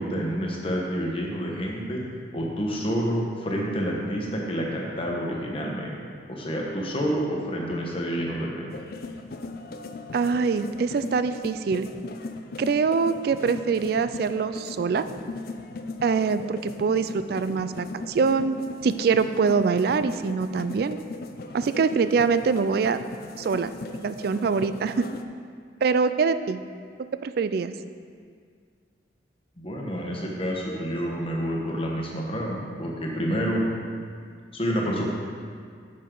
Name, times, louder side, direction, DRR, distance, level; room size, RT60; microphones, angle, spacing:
voice 1, 0.0-2.0 2.3-5.9 6.3-8.7 29.6-33.6 34.5-35.0, equal, 30° left, -2 dB, 1.1 m, -28 dB
sound 1, 8.7-25.2, left 3 dB, 50° left, 0.4 m, -38 dB
voice 2, 10.1-11.9 12.6-15.1 16.0-21.0 21.5-23.0 23.4-23.7 24.0-25.1 25.8-26.6 27.0-27.7, right 5 dB, 55° right, 12 dB, 0.3 m, -24 dB
9.2 x 6.4 x 3.8 m, 2.1 s
head